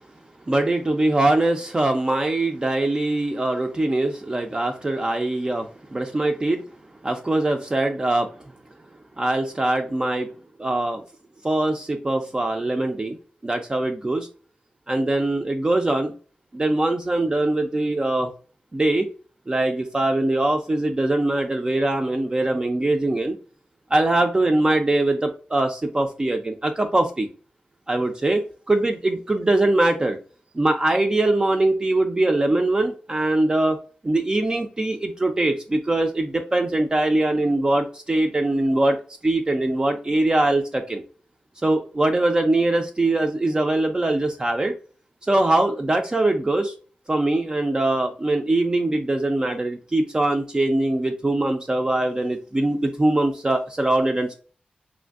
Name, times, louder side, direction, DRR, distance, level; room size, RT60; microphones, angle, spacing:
voice 1, 0.5-6.7 7.0-8.3 9.2-10.3 10.6-11.0 11.4-13.2 13.4-14.3 14.9-16.1 16.5-18.3 18.7-19.1 19.5-23.4 23.9-27.3 27.9-30.2 30.5-33.8 34.0-39.0 39.2-41.0 41.6-44.7 45.2-46.7 47.1-54.4, right 2 dB, 25° right, 4 dB, 0.3 m, -22 dB
3.1 x 2.5 x 2.4 m, 0.39 s
cardioid pair, 60°, 3 cm